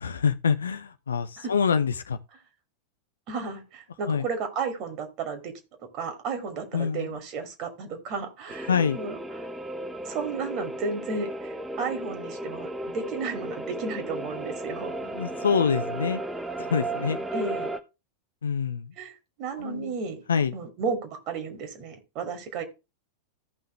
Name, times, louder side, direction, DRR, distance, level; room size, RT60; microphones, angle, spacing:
voice 1, 0.0-2.2 4.1-4.2 6.7-7.0 8.7-9.0 15.1-16.2 16.6-17.2 18.4-18.9 19.6-19.9 20.3-20.5, left 6 dB, 70° left, 0.6 m, -25 dB
voice 2, 3.3-5.5 5.9-9.5 10.0-15.0 17.3-17.7 19.0-20.2 20.5-22.6, right 5 dB, 40° right, 2.6 m, -33 dB
sound 1, 8.5-17.8, right 2 dB, 5° right, 1.0 m, -34 dB
14.5 x 5.6 x 3.3 m
figure-of-eight pair, 90°, 0 cm